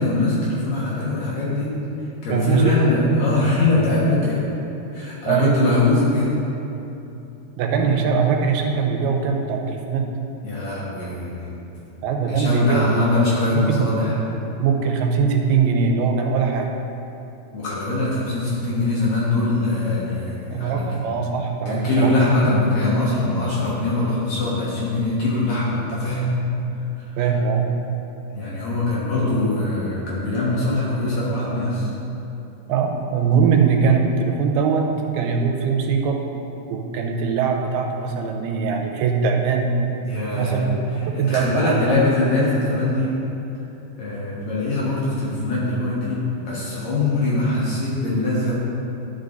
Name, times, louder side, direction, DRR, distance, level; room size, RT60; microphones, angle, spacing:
voice 1, 0.0-1.8 2.2-4.4 4.9-6.3 7.8-7.9 10.4-11.5 12.3-14.2 17.5-20.9 21.7-26.3 27.0-27.3 28.3-31.9 40.0-40.6 40.9-43.1 44.0-48.5, left 2 dB, 60° left, -7 dB, 2.2 m, -22 dB
voice 2, 2.3-2.7 4.1-4.2 5.3-5.6 7.6-10.0 12.0-13.1 13.7-13.9 14.6-16.7 20.5-22.1 27.2-27.7 32.7-34.9 35.1-36.2 36.7-39.7 40.4-42.0, right 6 dB, 85° right, 2 dB, 2.7 m, -21 dB
11.5 x 5.5 x 3.9 m, 2.9 s
omnidirectional pair, 4.4 m